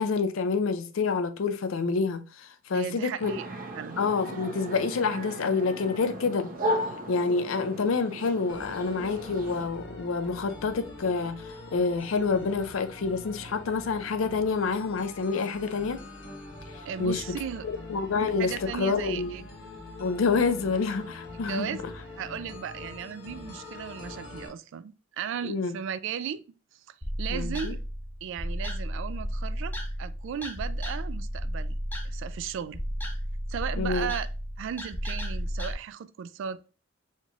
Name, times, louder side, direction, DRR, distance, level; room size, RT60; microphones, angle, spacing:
voice 1, 0.0-3.4 4.0-6.5 7.1-16.0 17.0-17.2 17.6-19.3 20.0-21.7 25.4-25.7 27.3-27.7 33.8-34.1, left 4 dB, 85° left, 0.5 m, -28 dB
voice 2, 2.7-3.5 3.7-4.0 16.8-17.7 18.4-19.5 21.3-21.8 22.2-26.4 26.7-27.8 28.2-31.8 32.0-32.8 33.5-34.3 34.6-36.7, right 8 dB, 65° right, 0.3 m, -36 dB
sound 1, 3.2-9.7, equal, 45° right, 0.7 m, -35 dB
sound 2, 8.5-24.5, left 2 dB, 65° left, 1.1 m, -44 dB
sound 3, 27.0-35.7, equal, 10° left, 0.6 m, -33 dB
4.3 x 3.0 x 2.3 m
head